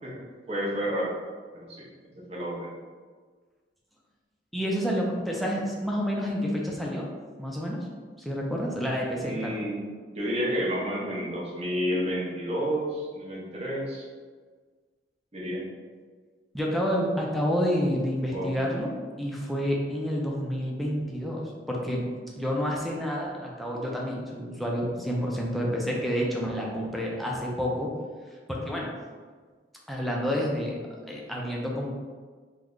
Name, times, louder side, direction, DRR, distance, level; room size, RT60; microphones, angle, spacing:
voice 1, 0.5-1.1 1.5-1.8 2.2-2.7 9.2-9.8 10.1-14.0 15.3-15.6 18.3-18.5, equal, 35° right, -4 dB, 0.7 m, -30 dB
voice 2, 4.5-7.1 7.4-7.9 8.2-9.6 16.5-18.9 19.2-27.9 28.5-28.9 29.9-30.8 31.1-31.9, equal, ahead, -3 dB, 0.5 m, -29 dB
3.1 x 2.2 x 3.7 m, 1.5 s
head